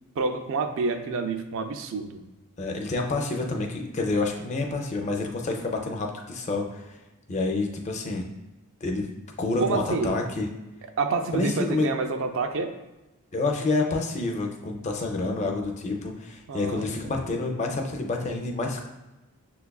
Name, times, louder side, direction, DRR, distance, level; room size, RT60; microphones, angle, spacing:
voice 1, 0.2-2.2 9.6-10.2 11.0-12.7 16.5-16.9, right 4 dB, 60° right, 7 dB, 0.4 m, -28 dB
voice 2, 2.6-7.0 7.3-8.3 8.8-9.1 9.4-10.5 11.3-11.9 13.3-18.9, left 3 dB, 30° left, 2 dB, 0.4 m, -28 dB
6.5 x 2.3 x 2.3 m, 1.0 s
head